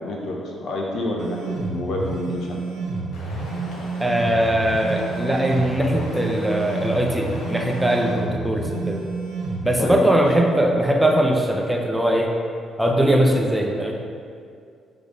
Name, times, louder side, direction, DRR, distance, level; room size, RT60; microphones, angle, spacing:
voice 1, 0.0-2.6 9.8-10.2, left 2 dB, 70° left, -1 dB, 0.9 m, -28 dB
sound 1, 1.2-9.7, right 4 dB, 75° right, 1.0 m, -30 dB
sound 2, 3.1-8.2, left 1 dB, 90° left, 1.2 m, -38 dB
voice 2, 4.0-9.0 9.6-12.3 12.8-14.0, right 1 dB, 5° right, 1 dB, 0.6 m, -20 dB
5.2 x 3.7 x 4.9 m, 2.3 s
cardioid pair, 90°, 0 cm